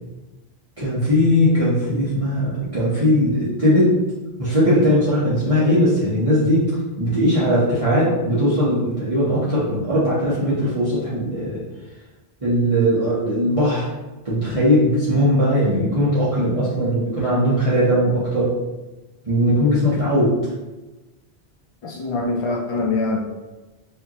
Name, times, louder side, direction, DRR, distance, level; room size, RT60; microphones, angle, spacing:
voice 1, 0.8-3.9 4.4-6.6 7.0-11.6 12.4-13.9 14.2-18.5 19.2-20.3, equal, 35° right, -10 dB, 1.1 m, -19 dB
voice 2, 21.8-23.2, left 3 dB, 55° left, 0 dB, 0.3 m, -23 dB
4.9 x 2.8 x 2.9 m, 1.1 s
omnidirectional pair, 1.1 m